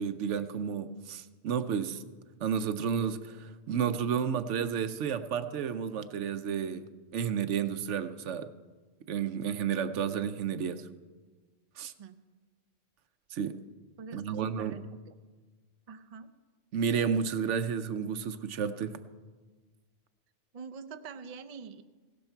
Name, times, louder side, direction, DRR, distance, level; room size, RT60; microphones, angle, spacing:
voice 1, 0.0-2.0 2.4-6.9 7.1-8.5 9.1-10.8 11.8-11.9 13.3-13.6 14.1-14.8 16.7-19.0, right 7 dB, 80° right, 10 dB, 1.0 m, -31 dB
voice 2, 14.0-15.1 15.9-16.3 20.5-21.8, right 5 dB, 40° right, 7 dB, 0.6 m, -45 dB
16.5 x 12.5 x 4.5 m, 1.4 s
omnidirectional pair, 1.2 m